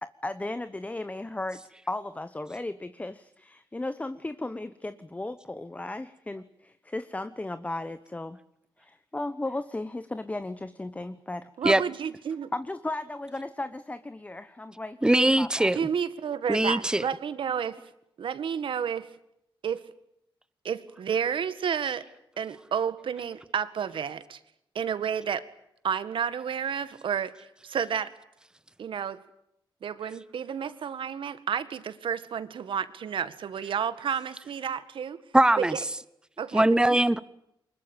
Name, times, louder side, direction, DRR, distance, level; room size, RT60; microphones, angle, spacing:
voice 1, 0.0-1.6 1.9-8.4 8.8-11.5 12.5-15.0 15.4-15.7, left 2 dB, 15° left, 1.0 m, -35 dB
voice 2, 11.6-12.5 15.7-17.8 18.2-19.1 19.6-19.8 20.6-22.0 22.4-24.4 24.8-25.4 25.8-27.3 27.6-28.1 28.8-29.2 29.8-35.2 35.7-35.8 36.4-36.6 36.9-37.0, right 7 dB, 75° right, 1.9 m, -31 dB
voice 3, 15.0-15.8 16.5-17.0 35.3-35.7 36.5-37.2, right 1 dB, 10° right, 1.0 m, -21 dB
24.0 x 21.5 x 9.0 m
cardioid pair, 95°, 9 cm